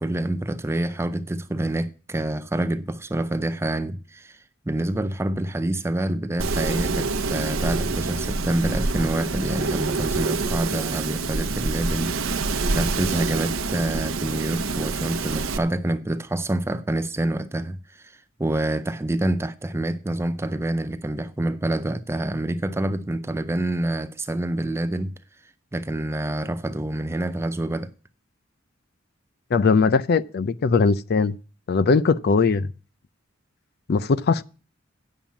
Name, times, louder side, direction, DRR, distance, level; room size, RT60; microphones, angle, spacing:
voice 1, 0.0-25.1 25.7-27.9, right 1 dB, 15° right, 0.5 m, -27 dB
Wind, 6.4-15.6, right 3 dB, 80° right, 0.9 m, -26 dB
voice 2, 29.5-31.4 31.7-32.7 33.9-34.4, left 4 dB, 50° left, 0.4 m, -20 dB
8.9 x 7.3 x 7.2 m
head